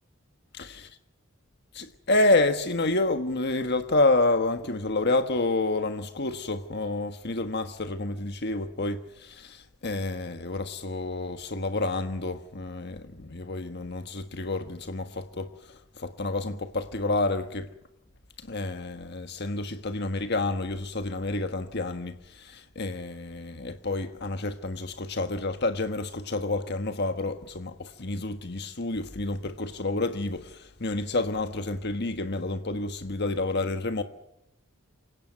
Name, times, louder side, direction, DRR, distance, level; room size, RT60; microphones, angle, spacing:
voice 1, 1.7-17.7 18.5-34.0, left 2 dB, 50° left, 1.5 m, -29 dB
28.0 x 17.0 x 9.1 m
head